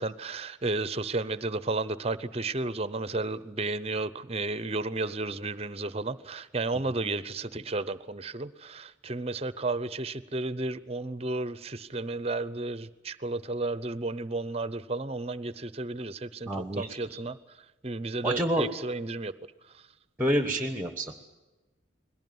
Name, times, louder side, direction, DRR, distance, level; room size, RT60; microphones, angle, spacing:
voice 1, 0.0-17.4 17.8-19.3 19.7-19.8, right 2 dB, 30° right, 16 dB, 0.8 m, -33 dB
voice 2, 16.5-17.2 18.2-18.7 20.2-21.2, equal, 10° right, 8 dB, 1.2 m, -28 dB
21.5 x 18.0 x 9.4 m, 1.1 s
head